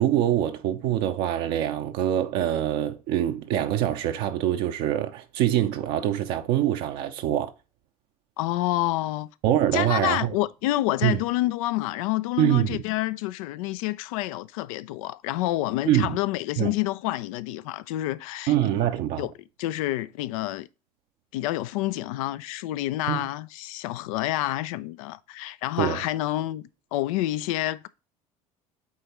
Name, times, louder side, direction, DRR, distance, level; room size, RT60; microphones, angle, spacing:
voice 1, 0.0-7.5 9.4-10.3 11.0-11.2 12.4-12.8 15.9-16.2 16.6-16.7 18.5-19.3 23.1-23.2 25.8-26.0, right 12 dB, 60° right, 0.7 m, -24 dB
voice 2, 8.4-9.3 9.7-18.5 19.2-19.3 19.6-20.7 21.3-26.6 26.9-27.9, left 16 dB, 65° left, 0.4 m, -28 dB
8.3 x 3.8 x 2.9 m
figure-of-eight pair, 60°, 19 cm